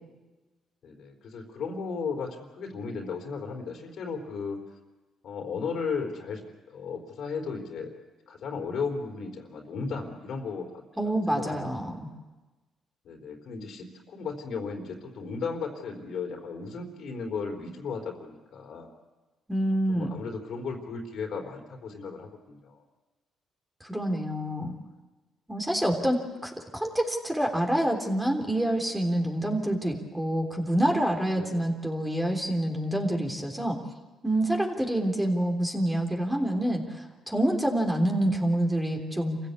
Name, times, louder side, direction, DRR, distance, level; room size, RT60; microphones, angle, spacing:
voice 1, 0.8-4.6 5.2-7.9 8.3-12.0 13.0-18.9 19.9-22.8 31.4-31.7, left 5 dB, 70° left, 3 dB, 3.9 m, -35 dB
voice 2, 11.0-12.1 19.5-20.1 23.8-24.8 25.5-33.8 34.2-39.4, right 1 dB, 10° right, 2 dB, 3.5 m, -27 dB
27.0 x 16.0 x 8.4 m, 1.2 s
cardioid pair, 90°, 0 cm